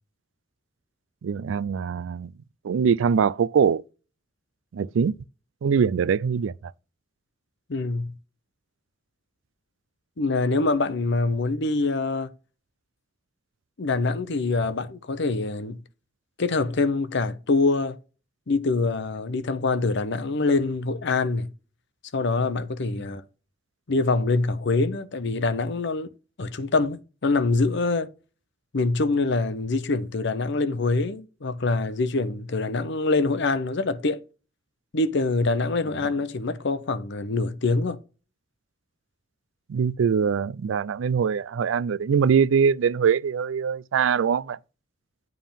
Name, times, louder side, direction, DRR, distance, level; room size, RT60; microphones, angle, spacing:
voice 1, 1.2-2.3 2.6-3.8 4.7-5.2 5.6-6.7 39.7-44.6, right 6 dB, 80° right, 0.4 m, -23 dB
voice 2, 7.7-8.1 10.2-12.3 13.8-15.8 16.4-18.0 18.5-21.5 22.1-23.2 23.9-26.1 26.4-28.1 28.7-34.2 34.9-38.0, left 3 dB, 65° left, 0.8 m, -25 dB
9.3 x 3.6 x 6.9 m
head